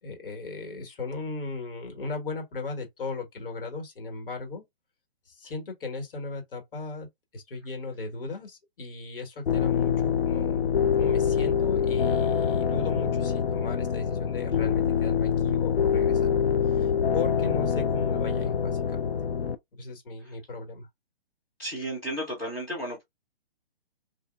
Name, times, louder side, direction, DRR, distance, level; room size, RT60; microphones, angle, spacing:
voice 1, 0.0-4.6 5.3-7.1 7.3-16.4 16.7-19.1 19.7-20.9, left 3 dB, 65° left, 1.5 m, -37 dB
sound 1, 9.5-19.6, left 7 dB, 90° left, 0.6 m, -25 dB
voice 2, 21.6-23.0, right 1 dB, 5° left, 0.3 m, -33 dB
3.1 x 2.5 x 2.4 m
figure-of-eight pair, 140°, 30 cm